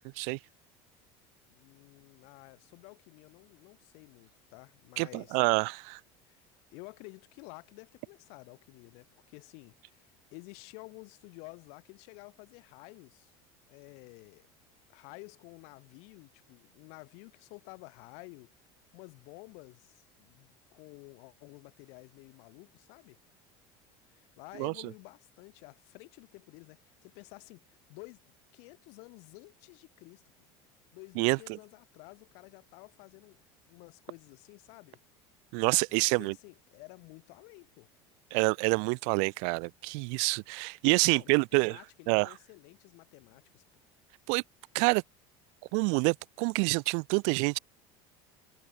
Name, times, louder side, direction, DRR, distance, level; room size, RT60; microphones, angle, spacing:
voice 1, 1.5-5.4 6.2-13.3 13.7-14.5 14.9-18.5 18.9-23.2 24.1-30.2 30.9-33.4 33.7-35.0 35.9-37.9 41.0-43.6, left 34 dB, 65° left, 6.6 m, -52 dB
voice 2, 5.0-6.0 24.6-24.7 31.2-31.6 35.5-36.3 38.3-41.8 42.1-42.3 44.3-44.4 44.7-45.0 45.7-47.6, right 40 dB or more, 65° right, 0.8 m, -27 dB
cardioid pair, 155°, 13 cm